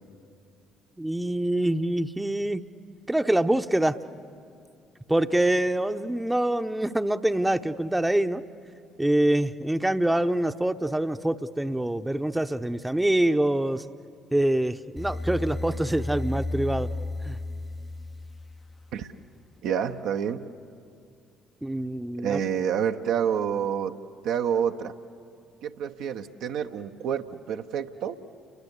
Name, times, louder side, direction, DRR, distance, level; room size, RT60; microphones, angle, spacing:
voice 1, 1.0-2.7 3.1-4.0 5.1-8.4 9.0-13.8 14.3-16.9 17.2-17.4 21.6-22.4, right 1 dB, 10° right, 10 dB, 0.9 m, -25 dB
sound 1, 15.0-19.0, left 2 dB, 20° left, 0.7 m, -33 dB
voice 2, 19.6-20.5 22.2-24.0 24.2-24.9 25.6-28.2, right 8 dB, 65° right, 5 dB, 1.0 m, -28 dB
29.5 x 22.5 x 8.4 m, 2.4 s
figure-of-eight pair, 50°, 0 cm